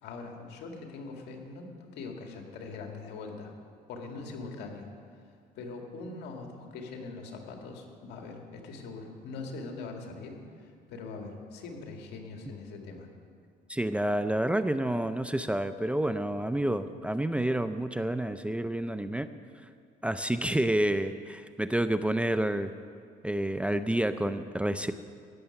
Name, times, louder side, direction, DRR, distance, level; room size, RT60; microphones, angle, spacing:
voice 1, 0.0-3.5 3.9-4.9 5.6-13.1, left 3 dB, 80° left, 2 dB, 2.1 m, -42 dB
voice 2, 13.7-19.3 20.0-22.7 23.2-24.9, right 1 dB, 5° right, 10 dB, 0.5 m, -29 dB
14.5 x 6.9 x 9.6 m, 2.2 s
cardioid pair, 110°, 17 cm